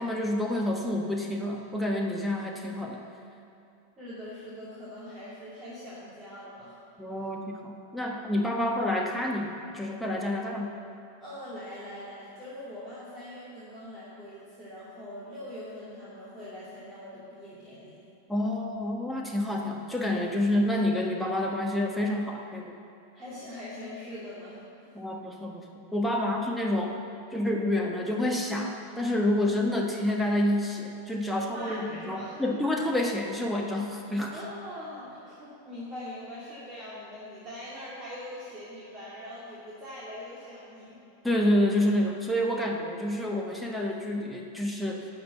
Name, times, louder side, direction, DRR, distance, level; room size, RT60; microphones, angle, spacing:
voice 1, 0.0-3.0 7.0-10.7 18.3-22.8 24.9-27.0 27.3-34.3 41.2-45.1, left 1 dB, ahead, -1 dB, 1.2 m, -28 dB
voice 2, 4.0-6.8 8.6-8.7 11.2-18.0 23.1-24.9 26.2-26.3 31.3-32.6 34.3-41.0, left 1 dB, 20° right, -8 dB, 2.5 m, -42 dB
11.5 x 6.4 x 7.1 m, 2.8 s
figure-of-eight pair, 90°, 0 cm